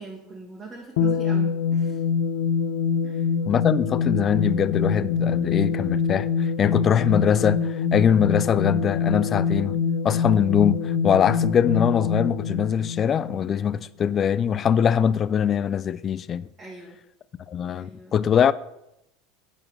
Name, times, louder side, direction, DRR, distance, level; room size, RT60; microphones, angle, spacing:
voice 1, 0.0-2.0 3.0-3.2 16.6-17.0 17.7-18.1, right 3 dB, 20° right, 1.6 m, -41 dB
sound 1, 1.0-13.8, left 6 dB, 80° left, 0.9 m, -25 dB
voice 2, 3.5-9.8 10.0-16.5 17.5-18.5, left 8 dB, 30° left, 0.3 m, -22 dB
8.8 x 4.4 x 6.1 m
supercardioid pair, 135°, 0 cm